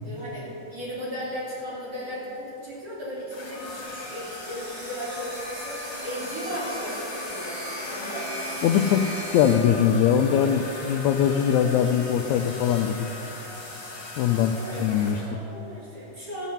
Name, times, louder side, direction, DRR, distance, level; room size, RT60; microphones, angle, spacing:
voice 1, 0.0-8.3 14.5-15.0 15.3-16.5, equal, 25° right, -8 dB, 3.6 m, -36 dB
sound 1, 3.3-15.3, left 2 dB, 40° left, 3.1 m, -38 dB
sound 2, 3.8-9.5, right 1 dB, 55° right, 3.0 m, -39 dB
voice 2, 8.6-13.1 14.2-14.5 14.8-15.2, left 8 dB, 85° left, 6 dB, 1.6 m, -22 dB
12.5 x 9.1 x 5.6 m, 2.9 s
omnidirectional pair, 3.8 m